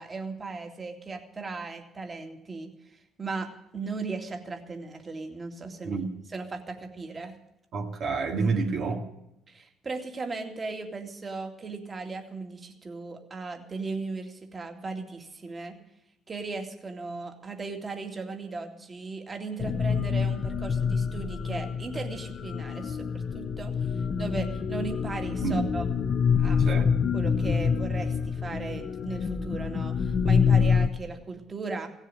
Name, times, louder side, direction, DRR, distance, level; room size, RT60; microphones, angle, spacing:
voice 1, 0.0-6.0 6.3-7.4 9.5-15.8 16.3-25.8 26.4-26.6 27.1-31.9, right 3 dB, 30° right, 5 dB, 2.3 m, -37 dB
voice 2, 7.7-9.1 25.4-25.7 26.6-26.9, right 4 dB, 60° right, 1 dB, 1.9 m, -28 dB
sound 1, 19.6-30.9, left 6 dB, 50° left, 0.9 m, -26 dB
16.5 x 7.4 x 9.8 m, 0.86 s
supercardioid pair, 80°, 0 cm